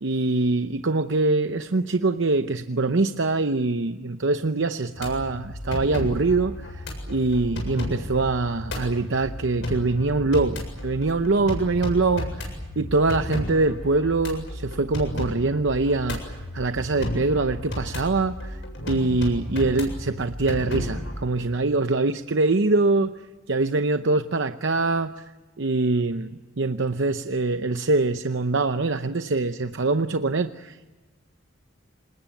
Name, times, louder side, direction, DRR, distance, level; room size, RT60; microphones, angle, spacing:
voice 1, 0.0-18.6 18.9-23.1 23.5-25.2 25.6-30.9, right 3 dB, 65° right, 9 dB, 0.8 m, -24 dB
sound 1, 5.0-21.3, left 1 dB, 65° left, 7.6 m, -33 dB
27.0 x 21.0 x 9.1 m, 1.2 s
head